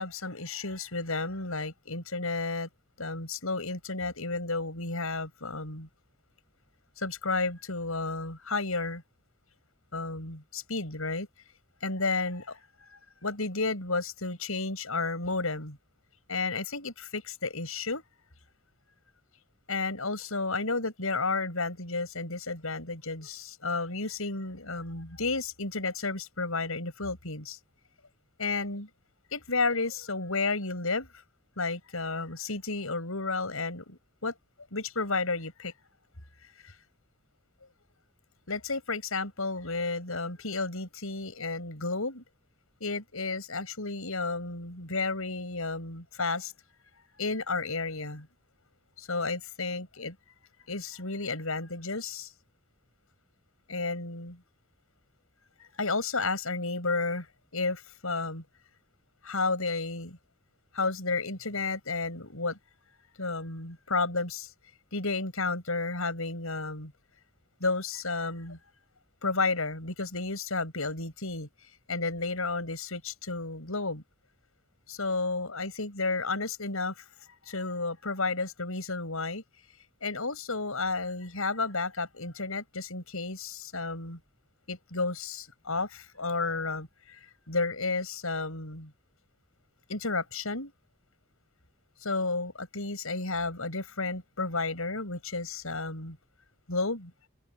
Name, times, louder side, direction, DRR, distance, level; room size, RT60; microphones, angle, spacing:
voice 1, 0.0-2.7 3.0-5.9 7.0-9.0 9.9-11.3 11.8-15.8 16.3-18.0 19.7-27.6 28.4-28.9 29.3-31.1 31.6-34.3 34.7-35.7 36.6-36.7 38.5-42.2 42.8-46.5 47.2-48.3 49.0-50.1 50.7-52.3 53.7-54.4 55.6-58.4 59.2-60.2 60.7-62.6 63.2-64.5 64.9-66.9 67.6-68.6 69.2-71.5 71.9-74.0 74.9-77.0 77.5-79.4 80.0-84.2 84.7-88.9 89.9-90.7 92.0-96.2 96.7-97.1, left 3 dB, 75° left, 7.6 m, -32 dB
head